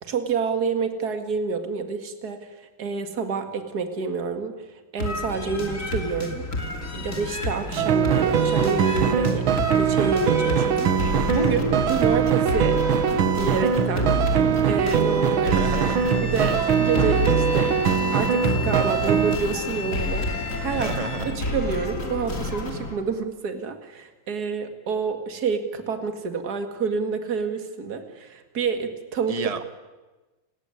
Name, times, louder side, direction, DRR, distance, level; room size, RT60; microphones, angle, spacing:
voice 1, 0.0-6.5 6.9-9.5 9.8-12.8 13.3-15.6 16.2-20.9 21.3-29.4, right 5 dB, 50° right, 7 dB, 2.5 m, -28 dB
sound 1, 5.0-22.9, left 1 dB, 40° left, 3.2 m, -29 dB
sound 2, 7.8-19.4, right 8 dB, 90° right, 2.1 m, -22 dB
Bowed string instrument, 15.4-21.4, left 5 dB, 70° left, 5.6 m, -35 dB
voice 2, 15.4-16.1 20.7-21.3 29.3-29.7, right 5 dB, 20° right, 10 dB, 1.3 m, -31 dB
29.5 x 16.5 x 9.8 m, 1.2 s
omnidirectional pair, 2.2 m